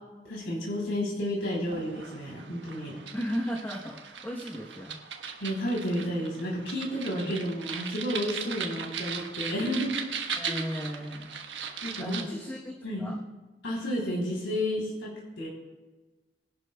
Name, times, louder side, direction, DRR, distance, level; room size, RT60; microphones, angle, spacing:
voice 1, 0.2-3.0 5.4-9.9 10.4-10.6 11.8-12.2 12.8-13.1 13.6-15.5, equal, 85° left, -4 dB, 3.4 m, -31 dB
sound 1, 1.6-12.2, right 6 dB, 80° right, 1.3 m, -38 dB
voice 2, 3.1-5.0 7.2-7.3 10.4-11.3 12.0-13.2, equal, 10° left, -2 dB, 1.0 m, -35 dB
21.5 x 11.5 x 2.3 m, 1.2 s
head